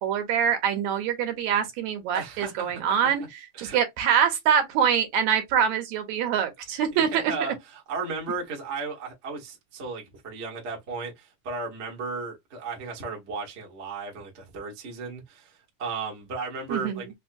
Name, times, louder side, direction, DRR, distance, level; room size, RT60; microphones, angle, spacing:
voice 1, 0.0-3.2 3.6-7.2 16.7-17.0, right 8 dB, 75° right, 2.1 m, -24 dB
voice 2, 2.1-3.3 3.5-3.8 6.8-17.1, right 4 dB, 55° right, 0.7 m, -35 dB
5.4 x 2.1 x 2.6 m
omnidirectional pair, 3.5 m